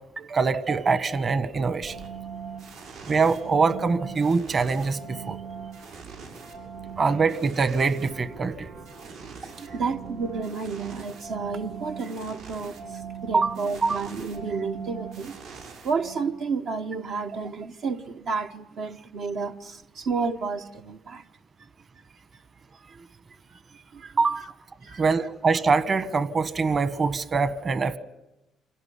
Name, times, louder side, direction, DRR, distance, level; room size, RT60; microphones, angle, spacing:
voice 1, 0.2-2.0 3.1-5.4 7.0-8.7 13.3-13.5 13.8-14.0 24.2-24.5 25.0-28.0, right 4 dB, 40° right, 1.4 m, -24 dB
sound 1, 1.8-16.5, right 6 dB, 90° right, 7.1 m, -41 dB
voice 2, 9.4-21.3 22.9-23.0 23.5-23.6 23.9-24.5 24.8-25.3, right 4 dB, 70° right, 1.1 m, -31 dB
26.5 x 17.5 x 10.0 m
cardioid pair, 80°, 0 cm